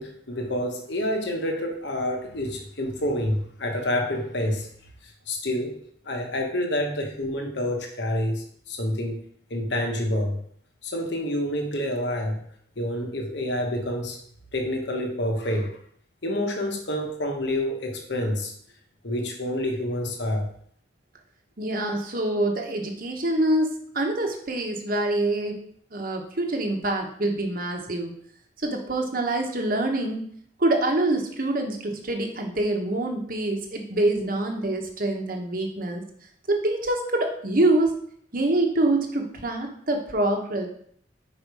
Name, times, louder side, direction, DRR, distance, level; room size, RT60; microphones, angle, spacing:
voice 1, 0.0-4.7 5.3-5.8 6.0-9.2 9.5-10.4 10.8-12.4 12.8-14.2 14.5-15.7 16.2-18.5 19.0-20.5, left 1 dB, 65° left, 2 dB, 1.1 m, -28 dB
voice 2, 21.6-25.6 25.9-28.1 28.6-30.2 30.6-36.0 36.5-38.0 38.3-40.7, right 2 dB, 45° right, 3 dB, 1.1 m, -25 dB
5.4 x 4.9 x 4.8 m, 0.63 s
head